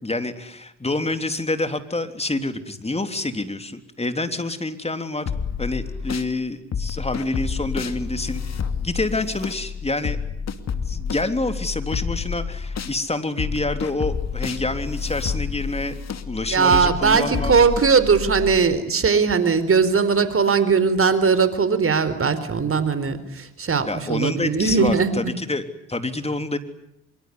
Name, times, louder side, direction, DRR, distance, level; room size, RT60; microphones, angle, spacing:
voice 1, 0.0-5.3 5.6-8.5 8.8-10.2 10.9-15.9 16.3-17.6 23.9-25.6 25.9-26.6, left 2 dB, 15° left, 8 dB, 3.5 m, -27 dB
sound 1, 5.3-6.3 6.7-13.0 13.4-18.6, left 6 dB, 50° left, 2.5 m, -29 dB
voice 2, 16.5-25.1, right 5 dB, 40° right, 14 dB, 4.2 m, -19 dB
25.0 x 23.5 x 9.7 m, 0.80 s
hypercardioid pair, 60°, 35 cm